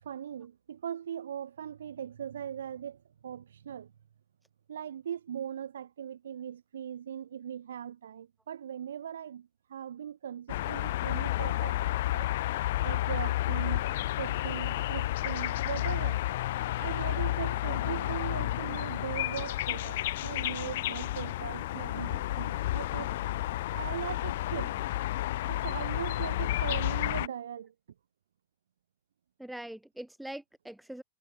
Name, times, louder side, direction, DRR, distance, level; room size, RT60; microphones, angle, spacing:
voice 1, 0.0-3.9 4.7-12.3 12.8-13.9 14.2-16.2 16.8-23.1 23.7-24.7 25.5-27.7, right 9 dB, 65° right, 0.3 m, -39 dB
sound 1, 10.5-27.3, left 15 dB, 55° left, 0.7 m, -31 dB
sound 2, 19.2-25.0, left 9 dB, 25° left, 1.1 m, -53 dB
voice 2, 29.4-31.0, right 1 dB, 5° right, 1.0 m, -44 dB
figure-of-eight pair, 90°, 0 cm